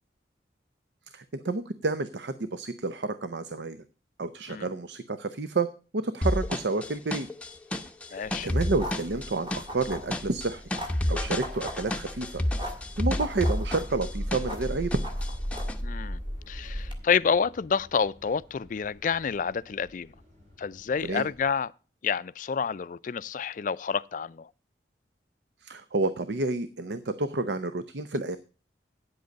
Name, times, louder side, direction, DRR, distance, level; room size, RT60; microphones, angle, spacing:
voice 1, 1.1-3.8 4.2-7.3 8.1-10.6 11.1-12.4 13.0-15.0 21.0-21.3 25.6-28.4, right 3 dB, 70° right, 0.6 m, -30 dB
sound 1, 6.2-14.7 14.9-15.8, left 1 dB, 5° left, 0.8 m, -30 dB
voice 2, 8.1-8.5 15.8-16.2 16.5-20.1 20.6-21.7 22.0-24.5, left 6 dB, 45° left, 0.4 m, -28 dB
sound 2, 8.2-16.9, equal, 30° right, 2.1 m, -36 dB
sound 3, 12.5-21.5, left 1 dB, 45° right, 4.1 m, -55 dB
9.5 x 7.9 x 5.1 m
head